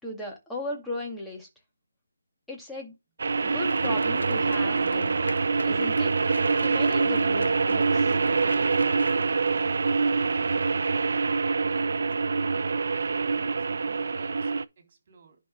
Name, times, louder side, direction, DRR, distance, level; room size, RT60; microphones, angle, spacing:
voice 1, 0.0-1.5 2.5-2.9 3.4-5.2 5.6-6.2 6.6-8.1, left 1 dB, 5° left, 2.0 m, -36 dB
sound 1, 3.2-14.6, right 4 dB, 55° right, 0.6 m, -25 dB
sound 2, 3.6-9.3, left 2 dB, 90° left, 0.6 m, -40 dB
voice 2, 10.0-11.1 11.4-12.2 12.4-15.5, right 4 dB, 35° right, 3.5 m, -55 dB
10.5 x 5.7 x 3.6 m
figure-of-eight pair, 160°, 0 cm